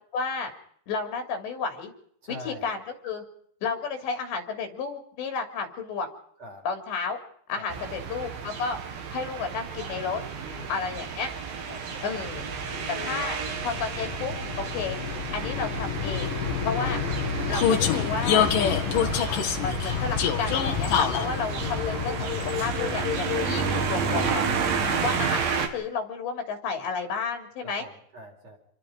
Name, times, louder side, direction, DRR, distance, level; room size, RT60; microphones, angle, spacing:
voice 1, 0.1-0.5 0.9-1.9 2.5-2.8 3.0-3.2 3.6-6.1 6.7-7.2 7.5-8.8 9.1-10.2 10.7-11.3 12.0-12.5 12.9-15.0 15.3-16.4 16.6-17.0 17.5-18.5 19.6-24.5 25.0-27.9, left 5 dB, 80° left, 5 dB, 5.4 m, -32 dB
voice 2, 2.2-2.7 6.4-6.6 7.5-8.0 10.4-11.0 11.7-12.1 16.7-17.0 24.8-25.0 27.6-28.6, equal, 40° right, 0 dB, 5.7 m, -44 dB
sound 1, 7.7-25.7, right 5 dB, 60° right, 3.9 m, -31 dB
Vehicle, 11.9-23.8, left 8 dB, 60° left, 2.7 m, -28 dB
28.0 x 23.0 x 5.3 m, 0.67 s
omnidirectional pair, 5.0 m